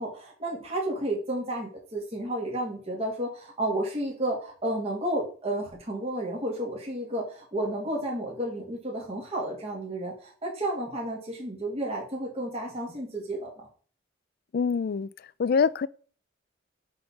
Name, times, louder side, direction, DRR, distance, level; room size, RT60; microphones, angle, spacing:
voice 1, 0.0-13.7, right 1 dB, 35° right, 2.1 m, -32 dB
voice 2, 14.5-15.1 15.4-15.9, left 5 dB, 50° left, 0.4 m, -24 dB
7.8 x 3.7 x 5.7 m
head